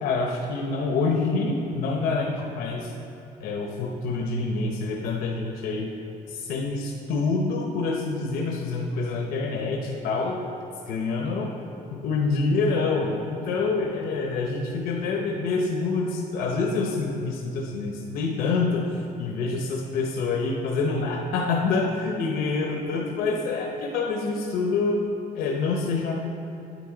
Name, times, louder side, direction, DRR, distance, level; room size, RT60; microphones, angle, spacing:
voice 1, 0.0-2.9 3.4-5.9 6.3-10.4 10.9-11.5 11.9-25.0 25.3-26.1, left 3 dB, 80° left, 1 dB, 0.7 m, -26 dB
9.2 x 8.9 x 3.8 m, 2.8 s
cardioid pair, 170°, 15 cm